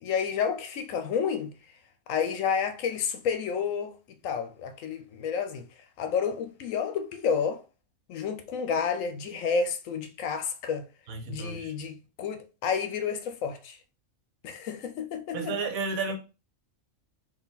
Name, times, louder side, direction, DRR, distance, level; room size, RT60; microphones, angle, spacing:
voice 1, 0.0-1.5 2.1-4.0 4.2-5.7 6.0-7.6 8.1-10.8 11.3-13.8 14.4-15.5, left 6 dB, 70° left, 0.9 m, -30 dB
voice 2, 11.1-11.7 15.3-16.2, right 4 dB, 75° right, 1.3 m, -32 dB
3.9 x 2.6 x 4.0 m
omnidirectional pair, 1.5 m